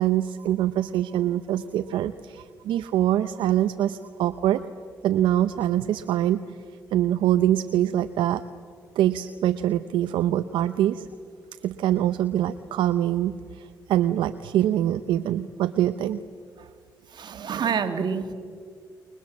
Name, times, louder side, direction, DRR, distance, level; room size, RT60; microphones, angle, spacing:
voice 1, 0.0-4.7 5.0-6.4 6.9-8.4 9.0-11.1 11.6-16.2, right 12 dB, 85° right, 11 dB, 0.7 m, -24 dB
voice 2, 17.1-18.3, right 6 dB, 65° right, 8 dB, 2.1 m, -27 dB
30.0 x 22.0 x 7.3 m, 2.1 s
cardioid pair, 70°, 8 cm